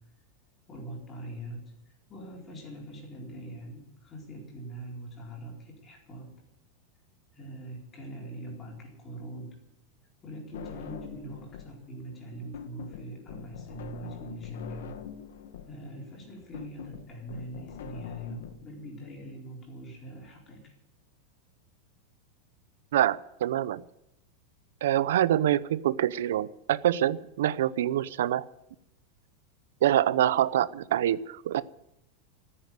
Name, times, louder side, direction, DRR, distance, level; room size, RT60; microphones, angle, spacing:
voice 1, 0.7-1.7 2.1-6.4 7.3-9.6 10.2-15.0 15.6-20.8, right 1 dB, 20° left, 0 dB, 4.3 m, -42 dB
sound 1, 10.5-11.8 12.1-18.5, left 8 dB, 85° left, 1.9 m, -43 dB
voice 2, 22.9-23.8 24.8-28.4 29.8-31.6, right 12 dB, 85° right, 18 dB, 0.7 m, -25 dB
14.5 x 9.9 x 9.5 m, 0.84 s
supercardioid pair, 175°, 0 cm